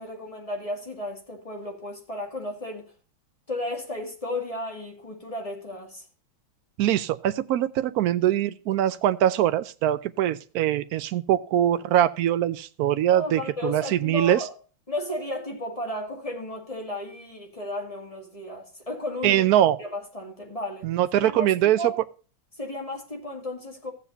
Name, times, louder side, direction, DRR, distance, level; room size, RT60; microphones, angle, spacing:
voice 1, 0.0-2.9 3.5-6.0 13.1-14.5 14.9-19.4 19.8-22.0 22.6-23.9, left 1 dB, 15° left, 2.3 m, -34 dB
voice 2, 6.8-14.4 19.2-19.8 20.8-21.8, right 12 dB, 70° right, 0.9 m, -23 dB
15.0 x 8.2 x 2.7 m
omnidirectional pair, 2.1 m